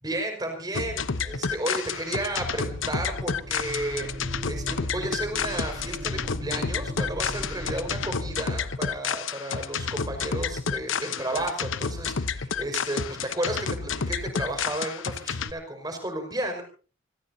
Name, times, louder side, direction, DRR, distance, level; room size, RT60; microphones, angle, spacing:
voice 1, 0.0-4.1 4.4-16.6, right 1 dB, 20° right, 4 dB, 5.3 m, -33 dB
sound 1, 0.7-15.5, left 5 dB, 85° left, 0.9 m, -30 dB
sound 2, 2.0-8.4, right 1 dB, 50° right, 4.1 m, -38 dB
26.5 x 17.5 x 2.8 m, 0.38 s
head